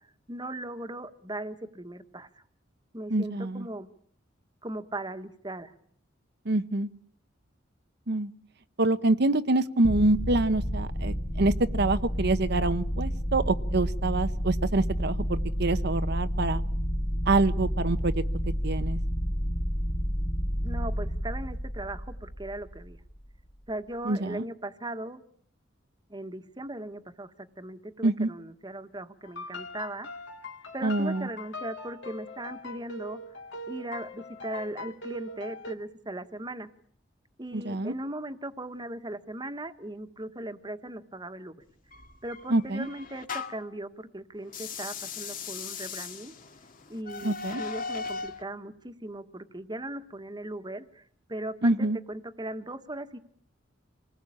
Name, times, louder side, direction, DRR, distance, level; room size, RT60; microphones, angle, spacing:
voice 1, 0.3-2.3 2.9-3.9 4.6-5.7 20.6-23.0 23.7-25.2 26.1-30.1 30.7-33.2 33.7-36.7 37.4-41.6 42.2-46.3 46.9-51.0 51.3-53.2, right 1 dB, 25° right, 9 dB, 1.5 m, -38 dB
voice 2, 3.1-3.7 6.5-6.9 8.1-8.3 8.8-16.6 17.3-18.2 18.6-19.0 24.0-24.4 28.0-28.3 30.8-31.3 37.5-37.9 42.5-42.9 47.2-47.6 51.6-52.0, right 2 dB, 60° right, 11 dB, 1.0 m, -26 dB
sound 1, 9.8-23.2, equal, 25° left, 1.3 m, -30 dB
sound 2, 29.2-35.8, left 2 dB, 65° left, 2.4 m, -41 dB
sound 3, 41.9-43.7 44.4-48.4, left 5 dB, 45° left, 2.1 m, -38 dB
27.5 x 19.5 x 8.7 m, 0.62 s
head